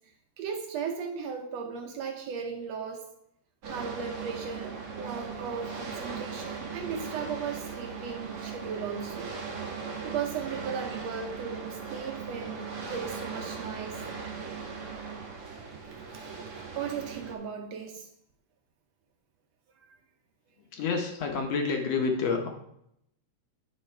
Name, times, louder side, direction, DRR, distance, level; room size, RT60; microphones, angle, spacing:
voice 1, 0.4-3.1 3.6-9.3 10.0-14.0 16.8-18.1 19.9-20.0, right 6 dB, 70° right, 4 dB, 1.8 m, -36 dB
sound 1, 3.6-17.3, right 5 dB, 50° right, 1.3 m, -39 dB
voice 2, 20.6-22.5, left 4 dB, 70° left, 3 dB, 1.9 m, -29 dB
9.6 x 5.6 x 4.4 m, 0.76 s
omnidirectional pair, 3.4 m